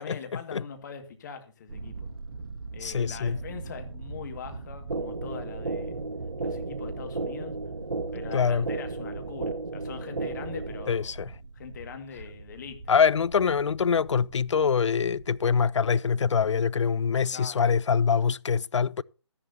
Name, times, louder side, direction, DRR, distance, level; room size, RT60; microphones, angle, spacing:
voice 1, 0.0-2.0 2.7-6.0 6.4-7.5 8.1-11.2 11.5-12.8 17.3-17.7, left 7 dB, 35° left, 2.1 m, -42 dB
Thunder, 1.7-15.9, right 3 dB, 50° right, 1.9 m, -42 dB
voice 2, 2.8-3.4 8.3-8.7 10.9-11.3 12.9-19.0, left 6 dB, 70° left, 0.4 m, -24 dB
sound 1, 4.9-10.9, right 3 dB, 75° right, 1.5 m, -34 dB
13.5 x 11.0 x 2.8 m
figure-of-eight pair, 145°, 16 cm